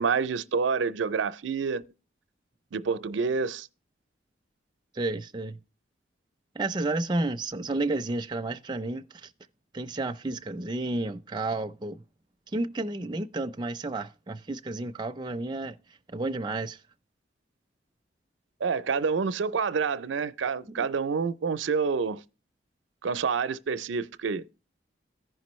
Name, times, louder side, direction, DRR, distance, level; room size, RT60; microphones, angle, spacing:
voice 1, 0.0-1.8 2.7-3.7 18.6-22.2 23.0-24.5, right 5 dB, 85° right, 0.5 m, -28 dB
voice 2, 4.9-5.6 6.5-9.3 9.7-12.0 12.5-15.8 16.1-16.8 20.7-20.9, right 2 dB, 25° right, 0.5 m, -31 dB
15.0 x 5.2 x 3.1 m
head